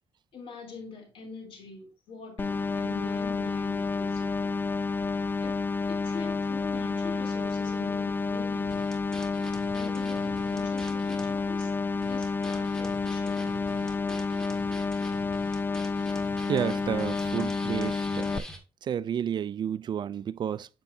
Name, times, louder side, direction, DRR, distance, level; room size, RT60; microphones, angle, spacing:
voice 1, 0.3-4.5 5.4-9.1 9.7-11.8 12.0-14.9, left 4 dB, 70° left, 3.5 m, -45 dB
sound 1, 2.4-18.4, left 4 dB, 20° left, 0.3 m, -30 dB
sound 2, 8.6-11.3 11.6-11.7 12.0-18.6, left 1 dB, 5° left, 2.0 m, -45 dB
voice 2, 16.5-18.5 18.9-20.7, right 9 dB, 55° right, 0.4 m, -31 dB
7.8 x 7.1 x 2.8 m
cardioid pair, 90°, 9 cm